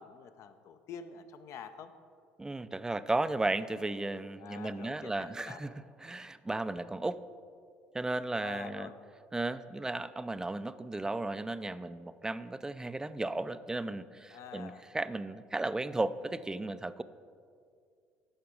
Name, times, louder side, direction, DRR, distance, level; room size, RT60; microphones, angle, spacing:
voice 1, 0.0-1.9 4.4-5.6 8.4-9.0 14.3-14.8, left 7 dB, 55° left, 9 dB, 0.7 m, -47 dB
voice 2, 2.4-5.7 6.0-7.2 7.9-8.9 9.3-17.0, right 2 dB, 10° right, 14 dB, 0.4 m, -35 dB
12.0 x 5.1 x 5.2 m, 2.2 s
hypercardioid pair, 60°, 6 cm